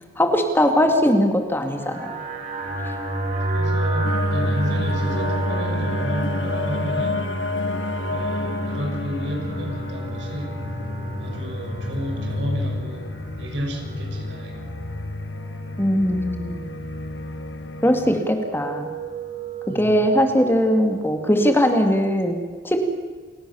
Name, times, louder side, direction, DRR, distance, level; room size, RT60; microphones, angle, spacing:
voice 1, 0.2-2.2 15.8-16.6 17.8-18.9 19.7-22.9, equal, 15° left, 5 dB, 2.3 m, -20 dB
sound 1, 1.8-21.5, right 1 dB, 40° right, 6.0 m, -30 dB
voice 2, 3.5-7.3 8.1-10.6 11.2-14.8 19.7-20.0, equal, 85° right, 2 dB, 6.2 m, -32 dB
sound 2, 4.0-18.2, left 3 dB, 85° left, 1.0 m, -31 dB
28.5 x 17.0 x 7.2 m, 1.5 s
head